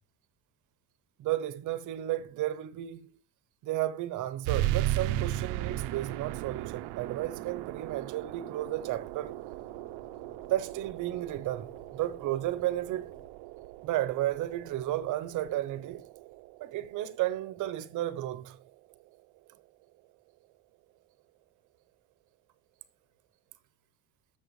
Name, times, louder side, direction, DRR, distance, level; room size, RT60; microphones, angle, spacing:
voice 1, 1.2-3.2 3.6-9.3 10.5-13.1 13.8-16.1 16.6-18.6, right 14 dB, 50° right, 0.9 m, -33 dB
sound 1, 4.4-19.5, right 14 dB, 85° right, 0.7 m, -37 dB
sound 2, 8.9-13.3, left 4 dB, 30° left, 1.4 m, -58 dB
13.5 x 7.2 x 3.1 m
cardioid pair, 180°, 39 cm